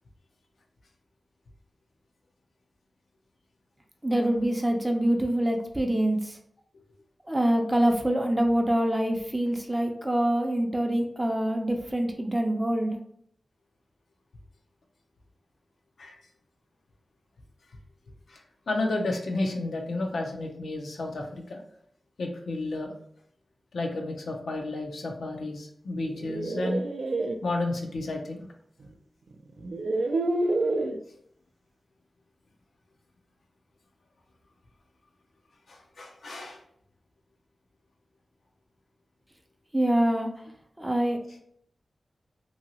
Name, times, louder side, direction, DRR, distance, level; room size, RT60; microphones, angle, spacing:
voice 1, 4.0-6.4 7.3-13.0 39.7-40.3 40.8-41.2, right 1 dB, 15° right, 3 dB, 0.5 m, -25 dB
voice 2, 18.3-21.6 22.2-22.9 23.7-26.8 27.4-28.5 35.7-36.6, left 2 dB, 90° left, 1 dB, 0.6 m, -32 dB
sound 1, 26.0-27.3 28.8-28.9 29.6-31.0, right 2 dB, 70° right, 0.3 m, -28 dB
2.8 x 2.8 x 2.8 m, 0.68 s
wide cardioid pair, 95°, 0 cm